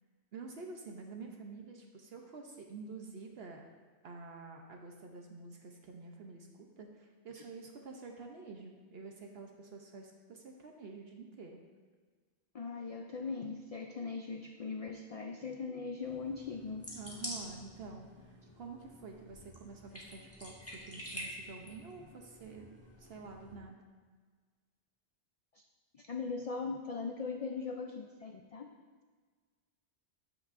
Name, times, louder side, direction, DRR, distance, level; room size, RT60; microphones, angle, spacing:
voice 1, 0.3-3.6 4.0-6.5 6.8-11.6 16.9-22.7 23.0-23.8, right 4 dB, 65° right, 2 dB, 0.9 m, -48 dB
voice 2, 12.5-16.8 25.5-25.6 25.9-28.7, left 4 dB, 55° left, 4 dB, 0.4 m, -40 dB
sound 1, 16.0-23.6, equal, 15° left, 1.4 m, -48 dB
13.5 x 6.0 x 2.5 m, 1.5 s
omnidirectional pair, 1.1 m